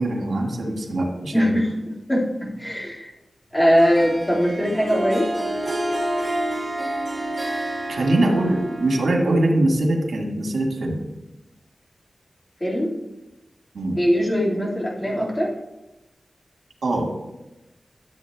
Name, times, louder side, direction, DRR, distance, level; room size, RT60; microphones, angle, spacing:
voice 1, 0.0-1.5 7.9-11.0 13.7-14.0 16.8-17.1, right 1 dB, 90° right, 0 dB, 1.8 m, -22 dB
voice 2, 2.1-3.1 3.5-5.3 12.6-12.9 14.0-15.5, equal, 15° left, -4 dB, 2.0 m, -21 dB
Harp, 3.8-9.6, right 1 dB, 35° right, 2.6 m, -29 dB
12.5 x 7.7 x 2.3 m, 0.99 s
wide cardioid pair, 110°, 0 cm